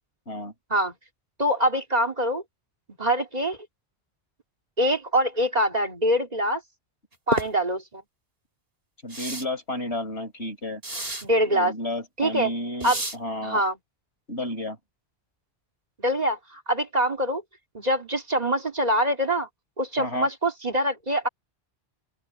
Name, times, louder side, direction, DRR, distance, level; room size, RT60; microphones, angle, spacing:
voice 1, 1.4-2.4 3.0-3.6 4.8-6.6 7.3-8.0 11.2-11.7 12.2-12.5 12.8-13.0 13.4-13.8 16.0-17.4 17.7-19.5 19.8-21.3, equal, 40° right, 2.6 m, -24 dB
sound 1, 7.3-7.5 9.1-9.4 10.8-11.3 12.8-13.2, right 2 dB, 60° right, 4.2 m, -29 dB
voice 2, 9.0-10.8 11.5-13.6 14.3-14.8 20.0-20.3, left 1 dB, 80° left, 6.2 m, -32 dB
open air
omnidirectional pair, 1.1 m